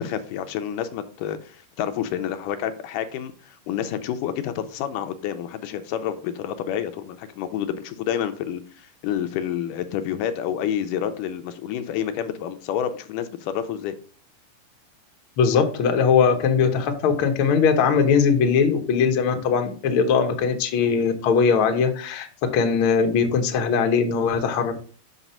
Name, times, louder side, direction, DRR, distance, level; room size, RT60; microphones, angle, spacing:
voice 1, 0.0-14.0, left 9 dB, 80° left, 2.2 m, -29 dB
voice 2, 15.4-24.7, left 6 dB, 65° left, 1.3 m, -20 dB
6.0 x 5.9 x 5.5 m
omnidirectional pair, 3.9 m